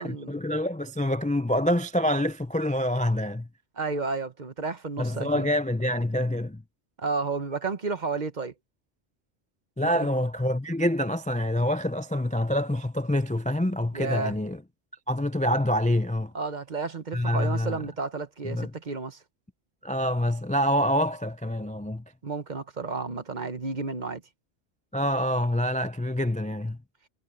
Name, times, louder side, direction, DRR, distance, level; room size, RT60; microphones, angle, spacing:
voice 1, 0.0-3.5 5.0-6.6 9.8-14.6 15.1-16.3 17.1-17.8 18.4-18.7 19.8-22.0 24.9-26.8, left 1 dB, 10° left, 0.3 m, -26 dB
voice 2, 3.8-5.5 7.0-8.5 13.9-14.4 16.3-19.2 22.2-24.2, right 4 dB, 40° right, 1.2 m, -32 dB
omnidirectional pair, 1.2 m